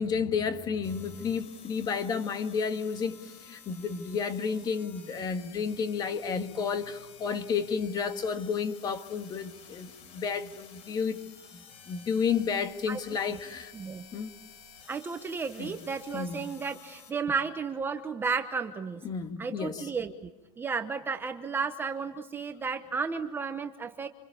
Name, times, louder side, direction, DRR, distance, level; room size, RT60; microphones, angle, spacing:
voice 1, 0.0-11.2 11.9-13.7 14.1-14.3 15.6-15.8 16.1-16.4 19.0-19.9, left 6 dB, 25° left, 1.7 m, -31 dB
sound 1, 0.8-17.1, left 6 dB, 40° left, 3.9 m, -52 dB
voice 2, 13.7-14.1 14.9-19.0 19.4-20.3 20.6-24.1, right 5 dB, 15° right, 0.9 m, -33 dB
27.5 x 27.0 x 7.0 m
supercardioid pair, 165°, 17 cm